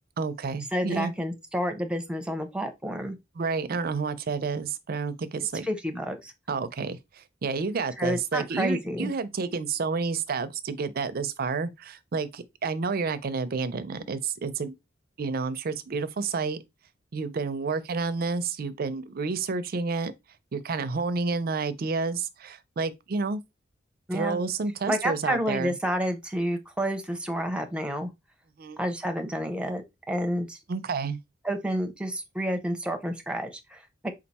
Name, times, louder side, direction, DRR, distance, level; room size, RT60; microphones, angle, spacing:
voice 1, 0.2-1.1 3.4-5.7 6.5-14.8 15.2-16.6 17.1-20.1 20.5-23.4 24.1-25.7 28.6-28.8 30.7-31.2, right 4 dB, 55° right, 0.5 m, -30 dB
voice 2, 0.7-3.2 5.6-6.3 8.0-9.1 24.1-24.4 24.9-28.1 28.8-29.8 30.1-30.6 31.4-34.1, equal, 5° right, 0.7 m, -29 dB
4.5 x 2.4 x 4.1 m
head